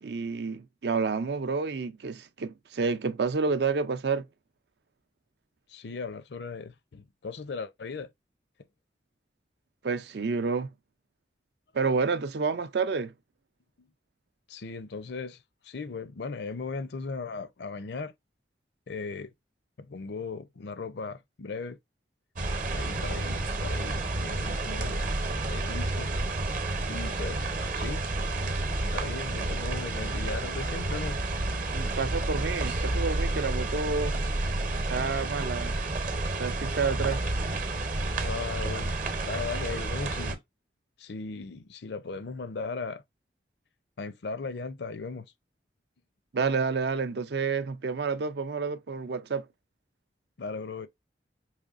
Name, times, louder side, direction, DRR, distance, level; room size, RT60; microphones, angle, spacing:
voice 1, 0.0-4.3 9.8-10.7 11.7-13.1 31.7-34.2 34.9-35.8 36.4-37.2 46.3-49.5, right 4 dB, 65° right, 0.5 m, -29 dB
voice 2, 5.7-8.1 13.8-13.9 14.5-18.1 18.9-19.3 19.8-21.8 22.6-25.0 25.5-26.1 26.9-27.5 27.7-28.0 28.9-31.2 38.2-38.9 39.2-40.4 41.0-43.0 44.0-45.3 50.4-50.9, left 4 dB, 70° left, 0.5 m, -37 dB
sound 1, 22.4-40.3, right 2 dB, 45° right, 0.8 m, -30 dB
4.9 x 3.0 x 2.4 m
head